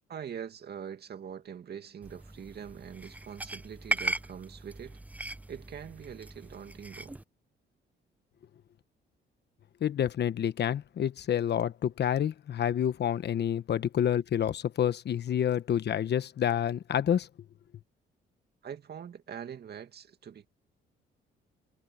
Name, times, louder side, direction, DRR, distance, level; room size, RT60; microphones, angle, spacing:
voice 1, 0.1-5.0 5.5-7.2 18.6-20.5, right 8 dB, 55° right, 2.3 m, -43 dB
sound 1, 2.0-7.2, right 2 dB, 5° right, 0.6 m, -38 dB
voice 2, 9.8-17.3, left 9 dB, 55° left, 1.1 m, -28 dB
cardioid pair, 90°, 20 cm